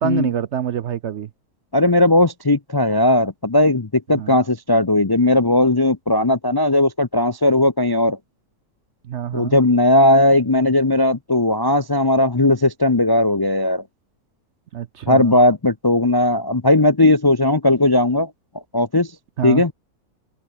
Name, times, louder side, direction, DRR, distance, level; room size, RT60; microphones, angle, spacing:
voice 1, 0.0-1.3 4.2-4.3 9.1-9.6 14.7-15.4 19.4-19.6, right 9 dB, 60° right, 0.8 m, -26 dB
voice 2, 1.7-8.2 9.3-13.8 15.1-18.3 18.7-19.1 19.4-19.7, left 1 dB, 25° left, 0.5 m, -17 dB
omnidirectional pair, 1.6 m